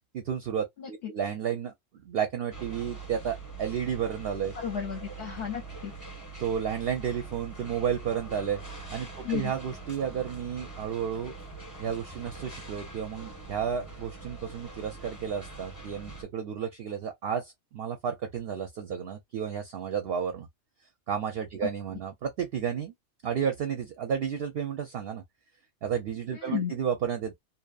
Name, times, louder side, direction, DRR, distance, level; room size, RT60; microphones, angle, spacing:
voice 1, 0.1-4.5 6.4-8.6 8.9-11.4 11.8-20.5 21.1-22.9 23.2-25.2 25.8-27.4, right 8 dB, 60° right, 0.7 m, -32 dB
sound 1, 2.5-16.2, right 3 dB, 15° left, 1.0 m, -43 dB
voice 2, 4.6-5.9 9.2-9.5 21.6-21.7 26.3-26.7, left 9 dB, 55° left, 0.8 m, -33 dB
2.7 x 2.1 x 2.3 m
omnidirectional pair, 1.3 m